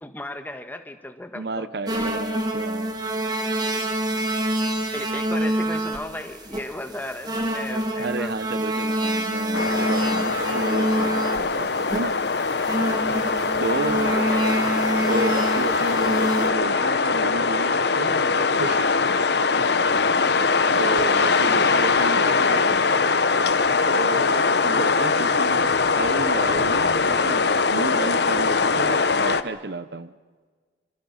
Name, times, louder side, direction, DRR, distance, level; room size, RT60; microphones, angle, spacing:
voice 1, 0.0-2.1 3.9-4.1 4.9-8.3 14.0-14.9, left 1 dB, 10° left, 7 dB, 1.6 m, -36 dB
voice 2, 1.3-3.0 8.0-12.2 13.6-14.2 15.1-18.9 20.7-22.8 23.9-30.1, right 2 dB, 60° right, 14 dB, 0.8 m, -32 dB
sound 1, 1.9-16.5, right 1 dB, 20° right, 2.2 m, -26 dB
sound 2, 9.5-29.4, left 4 dB, 65° left, 1.0 m, -22 dB
27.0 x 25.5 x 5.6 m, 1.5 s
head